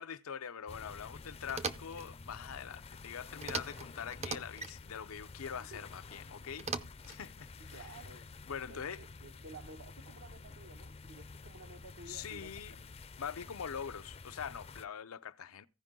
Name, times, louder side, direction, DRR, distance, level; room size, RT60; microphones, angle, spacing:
voice 1, 0.0-6.7 7.1-7.9 8.5-9.0 12.1-12.8 13.2-15.7, left 7 dB, 90° left, 0.6 m, -43 dB
sound 1, 0.7-14.9, left 4 dB, 30° left, 0.4 m, -50 dB
sound 2, 1.5-2.1 3.4-3.9 4.1-4.7 6.6-7.2, right 4 dB, 30° right, 0.6 m, -39 dB
voice 2, 7.6-8.3 8.6-12.9, right 3 dB, 70° right, 1.1 m, -53 dB
15.5 x 5.2 x 3.7 m
head